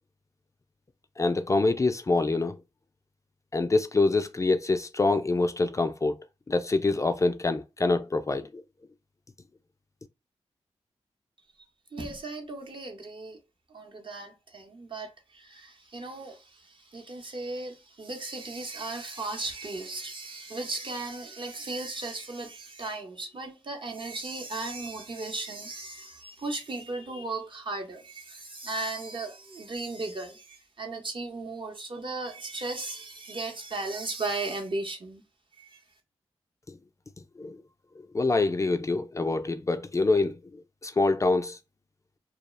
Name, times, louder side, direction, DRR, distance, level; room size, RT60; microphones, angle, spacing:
voice 1, 1.2-2.5 3.5-6.2 6.5-8.5 36.7-36.8 37.4-37.6 38.1-40.4 40.8-41.6, left 3 dB, 30° left, 0.3 m, -25 dB
voice 2, 11.9-13.4 13.7-35.2 35.6-35.8, right 2 dB, 50° right, 0.8 m, -36 dB
2.3 x 2.1 x 3.0 m
cardioid pair, 55°, 11 cm